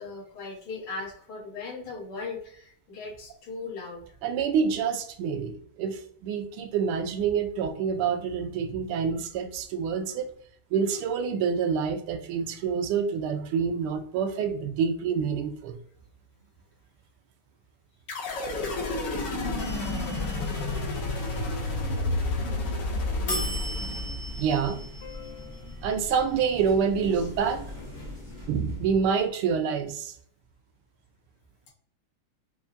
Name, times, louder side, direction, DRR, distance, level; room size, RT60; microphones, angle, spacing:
voice 1, 0.0-4.1 25.0-25.8 27.1-27.3, left 4 dB, 85° left, -4 dB, 2.3 m, -39 dB
voice 2, 4.2-10.3 10.7-15.8 24.4-24.8 25.8-27.7 28.5-30.1, right 6 dB, 85° right, 7 dB, 1.5 m, -27 dB
sound 1, 18.1-24.5, left 2 dB, 60° left, 1.5 m, -30 dB
sound 2, 19.6-21.6 23.3-29.3, equal, 35° left, 0.7 m, -38 dB
5.8 x 2.1 x 2.6 m, 0.62 s
omnidirectional pair, 2.4 m